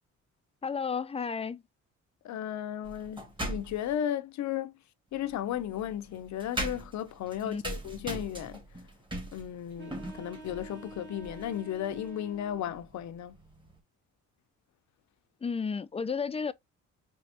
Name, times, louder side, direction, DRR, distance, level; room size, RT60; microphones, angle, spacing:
voice 1, 0.6-1.6 7.4-7.6 15.4-16.5, left 5 dB, 20° left, 0.5 m, -32 dB
voice 2, 2.2-4.7 5.1-8.6 9.3-13.4, left 10 dB, 70° left, 0.7 m, -35 dB
sound 1, 2.8-4.0 5.1-13.8, right 1 dB, 15° right, 2.0 m, -41 dB
sound 2, 9.7-12.7, right 4 dB, 35° right, 2.3 m, -48 dB
4.5 x 3.1 x 2.8 m
cardioid pair, 90°, 30 cm